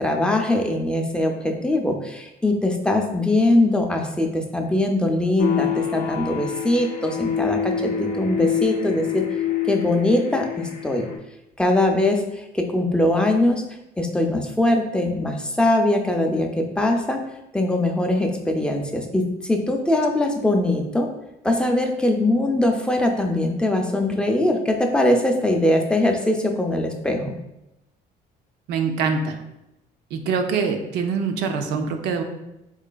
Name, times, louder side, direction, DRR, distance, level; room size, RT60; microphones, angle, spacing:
voice 1, 0.0-9.2 9.6-11.1 11.6-13.6 14.0-17.2 17.5-21.1 21.4-27.3, left 1 dB, 5° left, 3 dB, 0.4 m, -21 dB
sound 1, 5.4-11.2, left 8 dB, 60° left, 0.6 m, -26 dB
voice 2, 28.7-29.4 30.1-32.2, right 5 dB, 80° right, 6 dB, 0.5 m, -24 dB
3.8 x 3.1 x 2.2 m, 0.90 s
cardioid pair, 110°, 17 cm